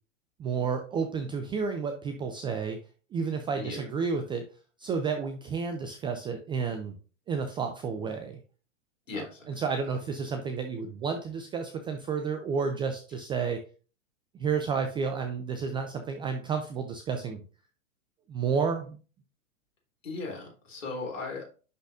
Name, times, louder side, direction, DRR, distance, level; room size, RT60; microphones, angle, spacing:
voice 1, 0.4-2.8 3.1-4.5 4.8-7.0 7.3-8.4 9.1-13.6 14.4-17.4 18.3-19.0, right 5 dB, 15° right, 6 dB, 0.4 m, -31 dB
voice 2, 9.1-9.5 20.0-21.5, left 3 dB, 80° left, -1 dB, 3.6 m, -37 dB
10.5 x 4.0 x 2.6 m, 0.37 s
hypercardioid pair, 110°, 38 cm